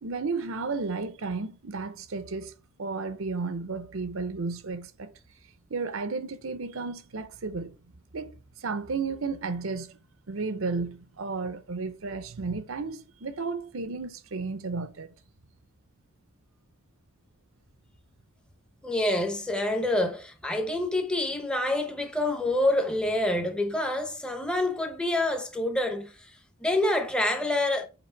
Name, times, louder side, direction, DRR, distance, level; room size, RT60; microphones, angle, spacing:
voice 1, 0.0-2.5 2.8-5.1 5.7-7.8 8.1-8.3 8.6-10.0 10.3-15.1, right 4 dB, 70° right, 0.8 m, -33 dB
voice 2, 18.8-26.3 26.6-27.9, left 1 dB, 5° left, 0.8 m, -27 dB
6.0 x 4.6 x 4.5 m
head